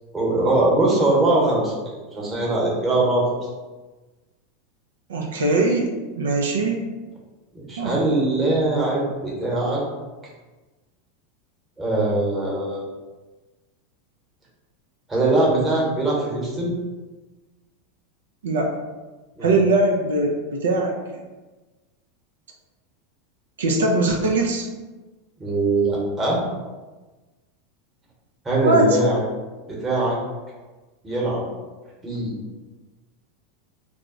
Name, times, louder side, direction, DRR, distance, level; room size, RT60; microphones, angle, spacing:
voice 1, 0.1-3.3 7.5-9.8 11.8-12.9 15.1-16.7 19.4-19.6 25.4-26.4 28.4-29.2 29.7-30.2 31.0-31.4 32.0-32.3, right 2 dB, 15° right, -4 dB, 1.0 m, -21 dB
voice 2, 5.1-5.9 6.2-6.8 7.8-8.0 18.4-18.7 19.4-20.9 23.6-24.7 28.6-29.0, right 2 dB, 90° right, 1 dB, 0.4 m, -21 dB
2.2 x 2.0 x 3.7 m, 1.2 s
hypercardioid pair, 110°, 0 cm